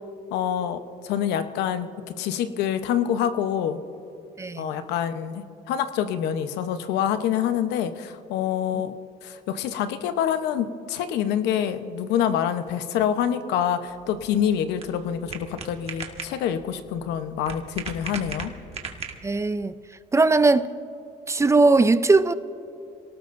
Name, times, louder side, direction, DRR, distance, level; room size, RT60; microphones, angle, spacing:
voice 1, 0.3-1.9 2.2-3.8 4.6-8.9 9.2-18.5, left 9 dB, 85° left, 0.9 m, -26 dB
voice 2, 4.4-4.8 19.2-19.7 20.1-20.7 21.3-22.3, right 3 dB, 15° right, 0.5 m, -19 dB
sound 1, 13.9-19.5, right 5 dB, 35° right, 1.8 m, -38 dB
27.0 x 18.5 x 2.6 m
cardioid pair, 110°, 17 cm